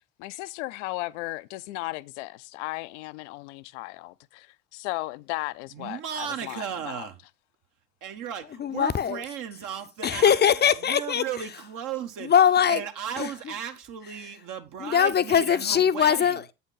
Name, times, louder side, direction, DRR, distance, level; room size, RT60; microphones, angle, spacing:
voice 1, 0.2-7.1, left 20 dB, 65° left, 0.5 m, -36 dB
voice 2, 5.7-7.2 8.0-10.4 10.8-12.3 12.7-16.4, right 8 dB, 55° right, 1.2 m, -35 dB
voice 3, 8.6-9.2 10.0-11.2 12.2-12.8 13.2-13.3 14.8-16.5, left 8 dB, 25° left, 0.6 m, -21 dB
8.2 x 5.6 x 3.9 m
figure-of-eight pair, 60°, 39 cm